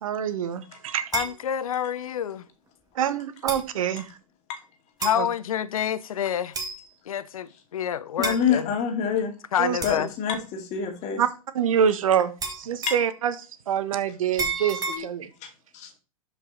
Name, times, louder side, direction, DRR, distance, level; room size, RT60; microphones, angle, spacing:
voice 1, 0.0-1.2 2.9-4.2 5.1-5.3 9.6-9.8 11.2-11.3 11.5-13.3 13.7-15.3, right 8 dB, 70° right, 1.4 m, -25 dB
voice 2, 1.1-2.4 5.0-6.6 7.1-8.7 9.5-10.1 14.9-15.1, left 9 dB, 70° left, 0.9 m, -28 dB
sound 1, 1.1-1.4 2.5-2.6 3.5-3.7 5.0-5.2 6.5-6.9 8.2-8.4 9.8-10.1 12.4-13.1 14.4-15.0, right 4 dB, 20° right, 2.2 m, -30 dB
voice 3, 8.2-9.3 9.8-11.2 12.9-13.0 15.4-15.9, left 7 dB, 40° left, 2.4 m, -26 dB
12.5 x 5.5 x 4.1 m
hypercardioid pair, 100°, 18 cm